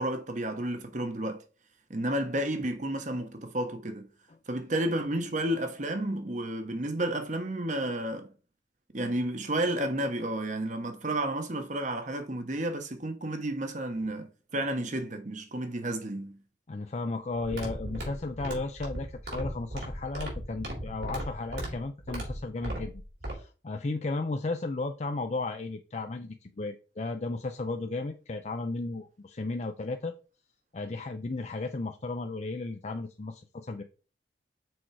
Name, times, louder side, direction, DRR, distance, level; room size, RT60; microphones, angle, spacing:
voice 1, 0.0-1.4 1.9-4.1 4.5-8.3 8.9-16.4, right 1 dB, 45° right, 1.1 m, -31 dB
voice 2, 16.7-23.0 23.3-30.1 30.7-33.8, left 3 dB, 40° left, 0.5 m, -34 dB
sound 1, 17.4-23.3, right 1 dB, 70° right, 3.5 m, -37 dB
6.2 x 4.5 x 4.7 m
head